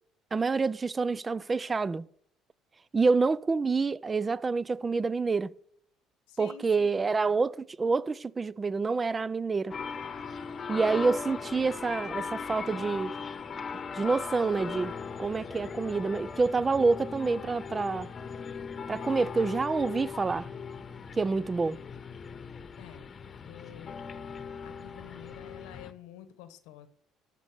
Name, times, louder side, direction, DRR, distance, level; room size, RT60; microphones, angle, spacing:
voice 1, 0.3-2.0 2.9-5.5 6.4-9.7 10.7-13.2 13.9-14.9 15.2-18.1 18.9-20.5 21.2-21.8, right 4 dB, 25° right, 0.4 m, -27 dB
voice 2, 6.3-7.0 22.8-23.1 23.4-24.1 24.6-26.9, left 11 dB, 90° left, 1.1 m, -49 dB
sound 1, 9.7-25.9, left 5 dB, 35° left, 0.9 m, -39 dB
13.5 x 5.3 x 6.7 m
supercardioid pair, 95°, 0 cm